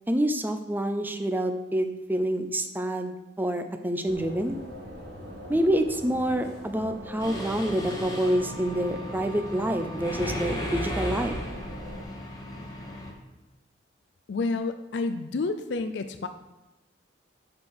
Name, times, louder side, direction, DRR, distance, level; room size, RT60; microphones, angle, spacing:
voice 1, 0.1-4.6 5.5-11.4, right 1 dB, 10° right, 7 dB, 0.5 m, -27 dB
sound 1, 4.1-12.0, equal, 60° right, 1.5 m, -42 dB
Mechanisms, 7.2-13.1, equal, 20° left, 1.2 m, -36 dB
voice 2, 14.3-16.3, left 3 dB, 70° left, 8 dB, 0.4 m, -29 dB
7.7 x 4.5 x 5.7 m, 1.0 s
head